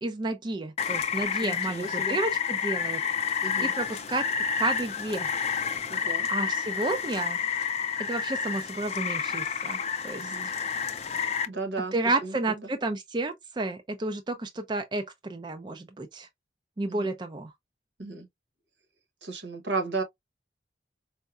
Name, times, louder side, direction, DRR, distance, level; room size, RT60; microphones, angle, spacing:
voice 1, 0.0-3.0 3.6-4.3 4.6-5.3 6.3-7.4 8.1-10.5 11.9-16.3 16.8-17.5, right 2 dB, 25° right, 0.4 m, -31 dB
Rain, 0.8-11.5, left 7 dB, 35° left, 0.4 m, -30 dB
voice 2, 1.4-2.2 3.4-3.7 5.9-6.3 10.2-10.5 11.5-11.9 12.2-12.3 16.9-17.1 18.0-18.3 19.2-20.0, right 3 dB, 80° right, 1.0 m, -34 dB
4.5 x 2.2 x 2.4 m
head